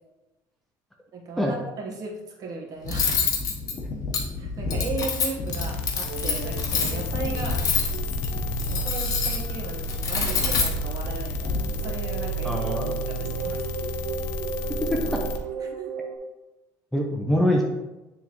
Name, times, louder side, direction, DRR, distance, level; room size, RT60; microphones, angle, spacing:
voice 1, 1.1-3.1 4.4-7.6 8.7-12.5 13.1-13.6 15.6-15.8, right 3 dB, 45° right, -1 dB, 1.4 m, -36 dB
Cutlery silverware, 2.9-11.6, left 5 dB, 50° left, 1.1 m, -27 dB
sound 1, 5.5-15.4, equal, 80° left, 0.9 m, -32 dB
sound 2, 6.0-9.2 9.5-10.0 10.3-16.2, right 4 dB, 90° right, 0.7 m, -35 dB
voice 2, 12.4-12.9 14.8-15.2 16.9-17.6, equal, ahead, -1 dB, 0.7 m, -24 dB
9.3 x 3.6 x 3.0 m, 1.0 s
cardioid pair, 130°, 8 cm